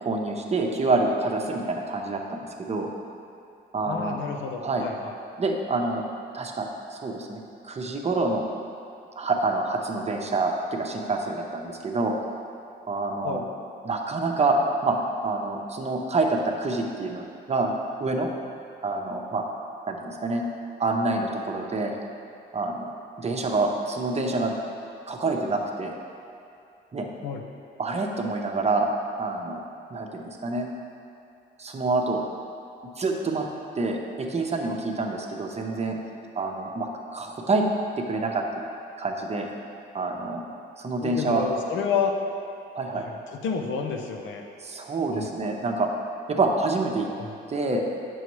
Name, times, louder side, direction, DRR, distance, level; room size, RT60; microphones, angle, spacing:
voice 1, 0.0-2.9 3.7-4.2 4.6-4.8 5.4-6.0 6.3-8.5 9.2-12.2 12.9-13.4 13.8-14.6 14.8-15.0 15.2-17.2 17.5-17.7 18.0-18.3 18.8-19.4 19.9-20.5 20.8-22.0 22.5-22.9 23.2-24.5 25.1-25.9 26.9-27.1 27.8-28.9 29.2-29.6 29.9-30.7 31.6-32.2 33.0-33.4 33.8-36.0 36.3-37.6 38.0-38.4 39.0-39.5 39.9-40.5 40.8-41.5 42.7-43.0 44.6-45.9 46.3-47.1 47.5-47.8, right 3 dB, 35° right, 1 dB, 0.8 m, -27 dB
voice 2, 3.8-5.1 13.2-13.5 27.2-27.4 41.0-42.1 42.9-44.4 45.1-45.3 47.2-47.3, left 6 dB, 75° left, 2 dB, 0.8 m, -30 dB
8.0 x 6.2 x 3.1 m, 2.6 s
cardioid pair, 90°, 20 cm